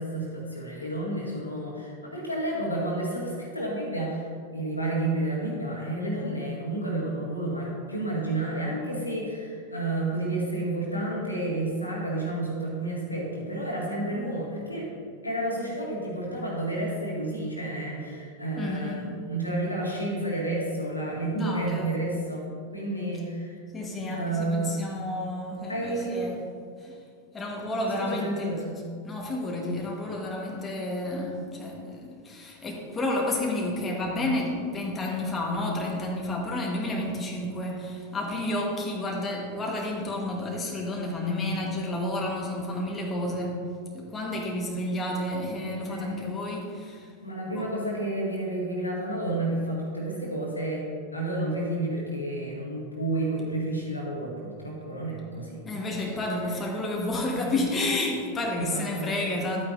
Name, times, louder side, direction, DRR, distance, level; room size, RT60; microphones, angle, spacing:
voice 1, 0.0-14.9 15.2-23.6 24.1-24.7 25.7-26.3 28.0-28.8 45.9-46.2 47.2-55.6 58.6-59.1, right 1 dB, 85° left, -3 dB, 1.9 m, -30 dB
voice 2, 18.5-19.0 21.3-22.0 23.7-26.4 26.8-27.0 27.3-28.7 29.0-43.6 43.9-47.1 47.5-47.7 55.6-59.7, left 1 dB, 15° left, -1 dB, 1.4 m, -31 dB
12.0 x 8.7 x 2.7 m, 2.1 s
figure-of-eight pair, 90°, 0 cm